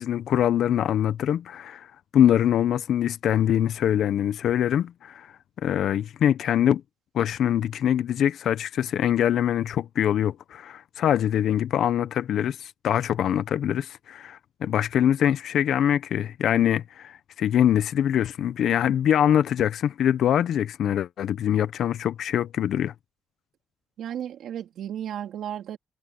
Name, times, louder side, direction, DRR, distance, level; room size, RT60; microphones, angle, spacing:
voice 1, 0.0-1.9 2.1-5.3 5.6-6.8 7.1-22.9, left 10 dB, 75° left, 0.6 m, -23 dB
voice 2, 24.0-25.8, right 10 dB, 80° right, 3.3 m, -34 dB
cardioid pair, 115°, 0 cm